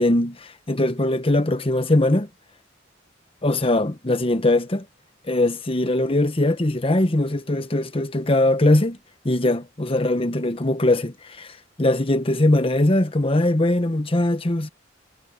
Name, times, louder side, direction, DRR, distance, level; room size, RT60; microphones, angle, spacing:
voice 1, 0.0-2.3 3.4-4.9 5.3-9.0 9.2-14.7, left 1 dB, 30° left, 1.1 m, -21 dB
head